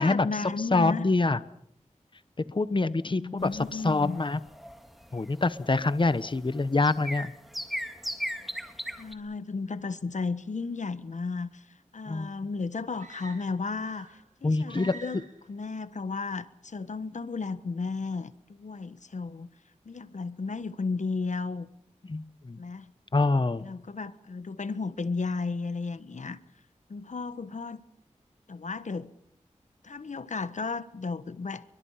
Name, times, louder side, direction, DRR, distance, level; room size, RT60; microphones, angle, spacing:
voice 1, 0.0-1.0 3.0-4.2 9.0-11.6 11.9-15.2 15.5-19.5 19.8-21.7 22.6-22.9 23.6-26.4 26.9-27.8 28.5-29.1 29.8-31.6, left 4 dB, 70° left, 14 dB, 1.3 m, -34 dB
voice 2, 0.6-1.4 2.5-4.4 5.1-7.3 12.1-12.3 14.4-15.0 22.1-22.6 23.1-23.6, left 3 dB, 40° left, 14 dB, 1.1 m, -25 dB
sound 1, 3.4-9.1, equal, ahead, 3.1 m, -38 dB
sound 2, 12.9-14.3 14.7-15.5, right 4 dB, 85° right, 6.4 m, -48 dB
30.0 x 23.0 x 5.7 m, 0.71 s
cardioid pair, 45°, 13 cm